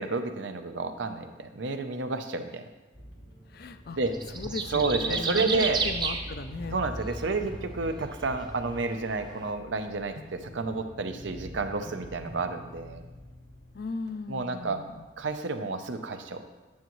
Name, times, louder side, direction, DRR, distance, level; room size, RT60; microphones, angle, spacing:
voice 1, 0.0-2.6 4.0-4.1 4.7-5.8 6.7-13.0 14.3-14.8 15.2-16.4, right 3 dB, 75° right, 7 dB, 0.6 m, -30 dB
sound 1, 2.9-15.3, equal, 85° left, 1.6 m, -46 dB
voice 2, 3.5-4.0 4.3-6.8 13.7-15.0, left 3 dB, 55° left, 10 dB, 0.4 m, -37 dB
sound 2, 4.0-9.5, right 4 dB, 25° right, 0.5 m, -34 dB
sound 3, 5.5-5.7 6.0-6.1 7.5-7.7 10.1-10.4 11.9-12.4 14.1-14.2, equal, 60° right, 1.0 m, -49 dB
9.4 x 7.2 x 3.1 m, 1.1 s
head